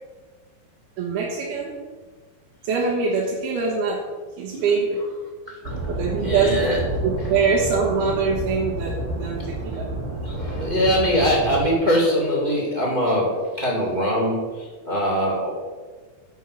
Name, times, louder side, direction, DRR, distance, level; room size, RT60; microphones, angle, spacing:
voice 1, 1.0-1.7 2.6-4.0 4.4-5.0 5.9-6.6 7.0-9.9, right 5 dB, 85° right, -3 dB, 3.2 m, -23 dB
sound 1, 5.6-11.6, right 1 dB, 70° right, 3.7 m, -29 dB
voice 2, 6.2-6.8 10.2-14.5 14.8-15.5, equal, 20° right, -2 dB, 1.6 m, -22 dB
9.2 x 6.4 x 7.0 m, 1.4 s
omnidirectional pair, 4.3 m